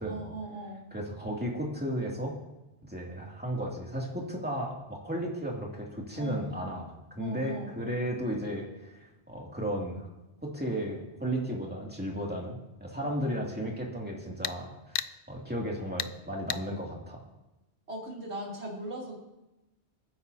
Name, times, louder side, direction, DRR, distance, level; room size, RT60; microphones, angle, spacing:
voice 1, 0.1-0.9 6.1-6.7 7.2-7.7 13.0-13.4 17.9-19.2, right 2 dB, 70° right, -5 dB, 3.5 m, -39 dB
voice 2, 0.9-2.4 2.8-10.1 10.4-14.9 15.3-17.2, equal, 10° right, -2 dB, 2.5 m, -34 dB
sound 1, 10.1-10.2 14.4-14.6 14.9-15.1 16.0-16.1 16.5-16.6, left 10 dB, 60° left, 0.6 m, -32 dB
26.5 x 10.0 x 2.8 m, 0.99 s
omnidirectional pair, 1.2 m